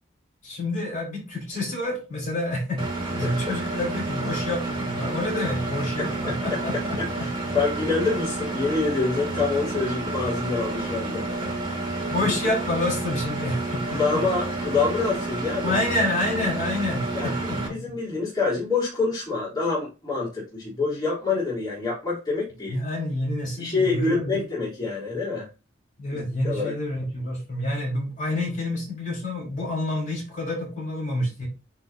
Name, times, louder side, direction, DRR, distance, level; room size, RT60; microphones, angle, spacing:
voice 1, 0.4-2.8 3.1-7.3 11.4-11.6 12.1-14.2 15.6-17.6 22.7-24.4 26.0-31.5, left 1 dB, 40° left, -2 dB, 4.0 m, -28 dB
Engine, 2.8-17.7, right 2 dB, 25° right, 2.2 m, -30 dB
voice 2, 3.2-3.5 6.0-11.2 11.8-12.3 13.9-15.8 17.1-22.8 23.6-25.5 26.1-26.7, left 4 dB, 20° left, -7 dB, 3.3 m, -27 dB
9.5 x 3.9 x 2.8 m, 0.29 s
head